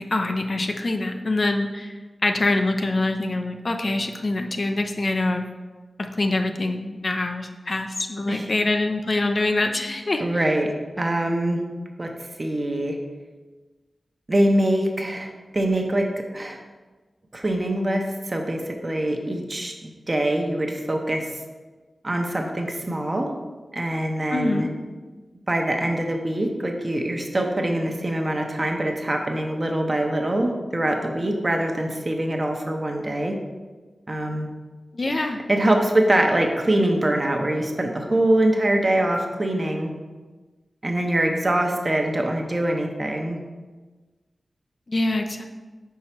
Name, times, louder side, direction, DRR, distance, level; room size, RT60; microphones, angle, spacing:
voice 1, 0.0-1.9 2.2-5.5 6.1-10.4 24.3-24.7 34.9-35.4 44.9-45.4, left 2 dB, 50° left, 5 dB, 0.6 m, -24 dB
voice 2, 10.2-11.6 12.0-13.0 14.3-16.6 17.3-21.4 22.0-23.3 23.7-24.7 25.5-33.4 34.1-34.5 35.1-39.9 40.8-43.4, right 1 dB, 35° right, 2 dB, 1.0 m, -24 dB
4.7 x 4.3 x 5.9 m, 1.3 s
cardioid pair, 55°, 0 cm